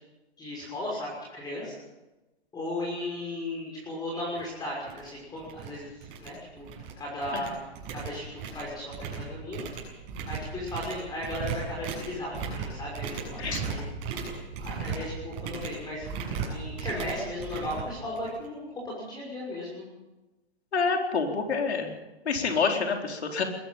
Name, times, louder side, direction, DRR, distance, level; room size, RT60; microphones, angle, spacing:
voice 1, 0.4-1.7 2.5-6.7 7.0-7.6 7.9-9.7 10.3-13.9 14.6-16.1 16.5-19.8, left 1 dB, 10° left, -3 dB, 6.1 m, -36 dB
sound 1, 4.3-4.4 4.9-5.1 5.4-5.7 6.0-6.9 7.2-18.4, right 5 dB, 30° right, 7.8 m, -36 dB
voice 2, 20.7-22.0 22.2-23.4, left 5 dB, 75° left, 2 dB, 4.4 m, -27 dB
21.0 x 15.0 x 8.6 m, 1.1 s
hypercardioid pair, 140°, 33 cm